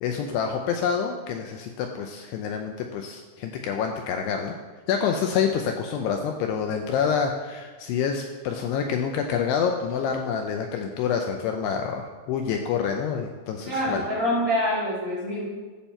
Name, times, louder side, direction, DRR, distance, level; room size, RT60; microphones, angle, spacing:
voice 1, 0.0-4.6 4.9-14.1, left 7 dB, 80° left, 3 dB, 2.5 m, -27 dB
voice 2, 13.7-15.4, equal, 40° right, -8 dB, 2.7 m, -25 dB
11.5 x 7.3 x 4.4 m, 1.4 s
omnidirectional pair, 5.2 m